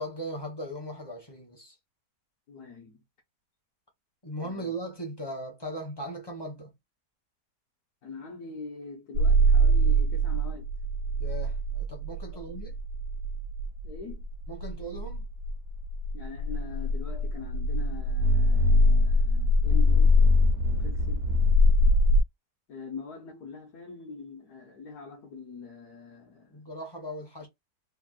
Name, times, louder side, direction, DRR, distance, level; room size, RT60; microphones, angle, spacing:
voice 1, 0.0-1.8 4.2-6.7 11.2-12.8 14.5-15.3 26.5-27.5, right 1 dB, 20° left, 0.6 m, -38 dB
voice 2, 2.5-3.0 4.4-4.7 8.0-10.7 12.3-12.6 13.8-14.2 16.1-20.2 20.7-21.3 22.7-26.6, left 4 dB, 65° left, 1.3 m, -43 dB
sound 1, 9.1-22.2, left 1 dB, 75° right, 1.1 m, -23 dB
3.4 x 2.2 x 2.3 m
omnidirectional pair, 1.8 m